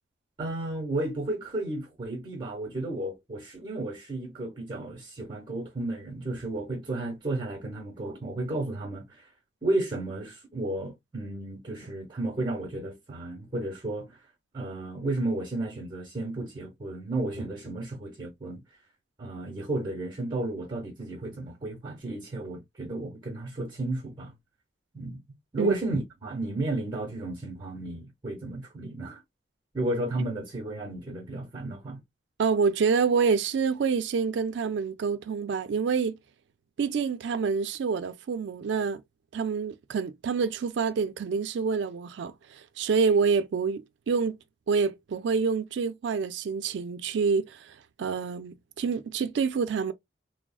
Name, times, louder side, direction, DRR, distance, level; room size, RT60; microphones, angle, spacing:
voice 1, 0.4-9.2 9.6-14.2 14.5-18.6 19.2-24.3 24.9-25.2 25.5-29.2 29.7-32.0, right 2 dB, 25° right, 0.8 m, -33 dB
voice 2, 32.4-36.2 36.8-39.0 39.3-44.4 44.7-49.9, right 5 dB, 70° right, 0.4 m, -27 dB
3.5 x 2.0 x 2.2 m
head